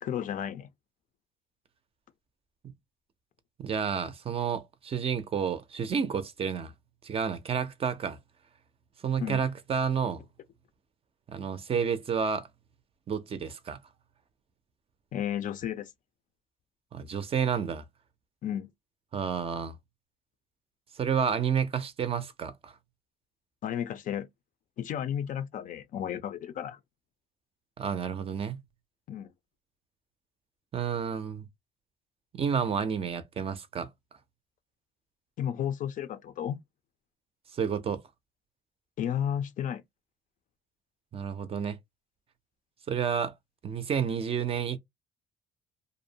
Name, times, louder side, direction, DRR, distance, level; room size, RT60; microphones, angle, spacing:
voice 1, 0.0-0.7 9.2-9.4 15.1-15.9 18.4-18.7 23.6-24.3 24.8-26.8 29.1-29.3 35.4-36.6 39.0-39.8, left 9 dB, 50° left, 0.4 m, -33 dB
voice 2, 3.6-6.7 7.0-8.2 9.0-10.2 11.3-12.5 13.1-13.8 16.9-17.8 19.1-19.8 20.9-22.7 27.8-28.6 30.7-31.5 32.3-33.9 37.5-38.0 41.1-41.8 42.9-43.3 43.6-44.8, right 7 dB, 35° right, 0.4 m, -30 dB
2.6 x 2.0 x 2.7 m
cardioid pair, 110°, 17 cm